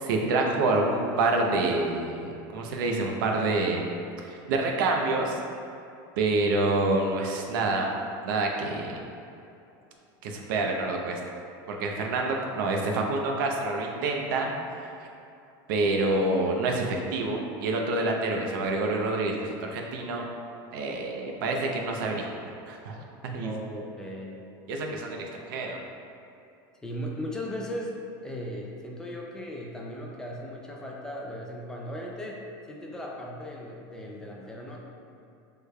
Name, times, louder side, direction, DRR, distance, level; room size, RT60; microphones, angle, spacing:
voice 1, 0.0-3.9 4.2-5.4 6.2-7.9 8.2-9.0 10.2-11.2 11.7-14.5 15.7-20.2 20.7-23.5 24.7-25.8, right 2 dB, 80° right, 1 dB, 0.6 m, -27 dB
voice 2, 23.4-24.5 26.8-34.8, equal, 5° left, -2 dB, 0.4 m, -37 dB
6.4 x 3.3 x 2.2 m, 2.7 s
supercardioid pair, 170°, 11 cm